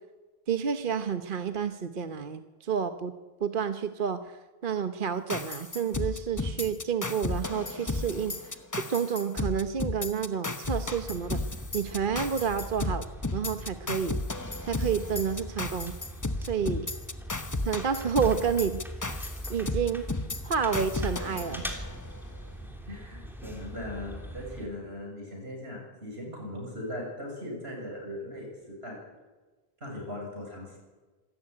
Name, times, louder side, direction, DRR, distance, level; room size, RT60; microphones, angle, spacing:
voice 1, 0.5-3.1 3.4-11.4 11.7-13.1 13.3-14.2 14.6-15.9 16.4-16.9 17.6-18.8 19.5-20.1 20.4-21.6, right 6 dB, 55° right, 9 dB, 1.1 m, -30 dB
sound 1, 5.3-22.2, left 2 dB, 20° left, 1.0 m, -34 dB
sound 2, 10.6-24.6, equal, ahead, 3.2 m, -42 dB
voice 2, 22.9-29.0 29.8-30.8, left 1 dB, 85° right, 0 dB, 7.6 m, -39 dB
26.0 x 13.5 x 9.8 m, 1.3 s
omnidirectional pair, 1.0 m